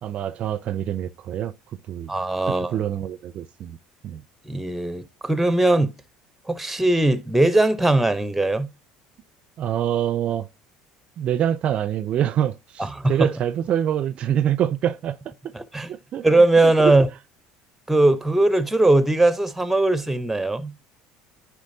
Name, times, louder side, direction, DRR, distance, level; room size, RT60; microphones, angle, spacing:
voice 1, 0.0-1.5 1.9-2.1 2.5-3.8 4.0-4.2 9.6-10.5 11.2-15.2 15.9-16.3 16.6-17.0, right 10 dB, 50° right, 0.4 m, -25 dB
voice 2, 2.1-2.7 4.5-5.9 6.5-8.7 12.8-13.3 15.5-15.9 16.2-17.1 17.9-20.7, right 2 dB, 5° right, 0.7 m, -19 dB
10.5 x 4.7 x 2.7 m
supercardioid pair, 95°, 3 cm